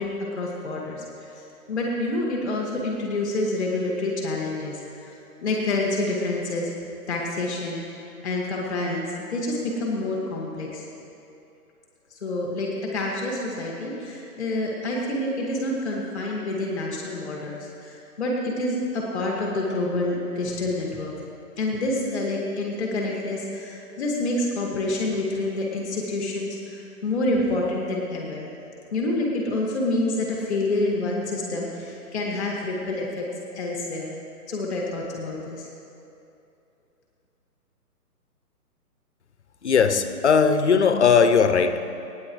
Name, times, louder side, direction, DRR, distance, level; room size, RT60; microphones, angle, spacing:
voice 1, 0.0-6.7 7.1-10.8 12.1-21.1 21.6-28.5 28.9-33.2 33.5-34.2 34.5-35.7, left 2 dB, ahead, -4 dB, 0.8 m, -28 dB
voice 2, 39.6-41.9, left 6 dB, 45° left, 10 dB, 0.6 m, -19 dB
25.5 x 9.4 x 3.1 m, 2.7 s
hypercardioid pair, 170°, 47 cm